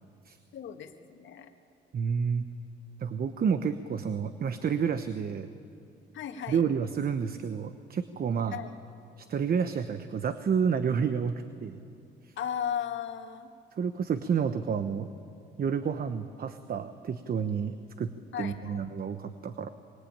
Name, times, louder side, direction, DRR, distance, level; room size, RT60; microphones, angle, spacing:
voice 1, 0.5-1.5 6.1-6.6 8.5-8.7 12.4-13.5 18.3-18.8, left 9 dB, 70° left, 6 dB, 1.7 m, -36 dB
voice 2, 1.9-2.4 3.0-5.5 6.5-8.6 9.2-11.8 12.2-12.3 13.8-15.1 15.6-19.7, right 6 dB, 50° right, 10 dB, 1.1 m, -30 dB
24.0 x 22.0 x 8.9 m, 2.5 s
cardioid pair, 90°, 20 cm